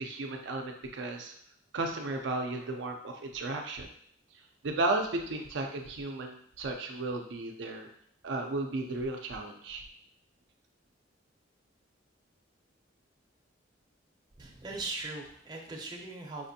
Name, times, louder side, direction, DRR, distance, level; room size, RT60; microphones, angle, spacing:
voice 1, 0.0-1.3 1.7-3.9 4.6-7.9 8.2-9.8, right 2 dB, 70° right, 2 dB, 0.4 m, -34 dB
voice 2, 14.4-16.5, right 2 dB, 25° right, -1 dB, 0.6 m, -39 dB
4.9 x 2.5 x 2.6 m, 0.64 s
head